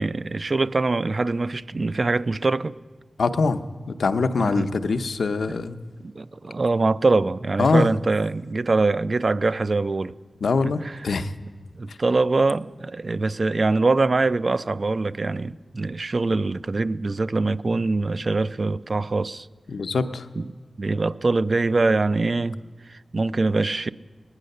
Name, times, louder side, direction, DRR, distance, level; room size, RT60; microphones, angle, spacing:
voice 1, 0.0-2.8 4.4-4.7 6.0-10.1 10.6-11.0 11.8-19.5 20.4-20.5 20.8-22.6 22.9-23.9, right 3 dB, 50° right, 0.4 m, -23 dB
voice 2, 3.2-3.6 3.9-5.8 7.6-7.9 10.4-11.3 11.9-12.0 19.7-20.3, left 4 dB, 85° left, 0.6 m, -23 dB
19.0 x 9.7 x 6.5 m
cardioid pair, 60°, 0 cm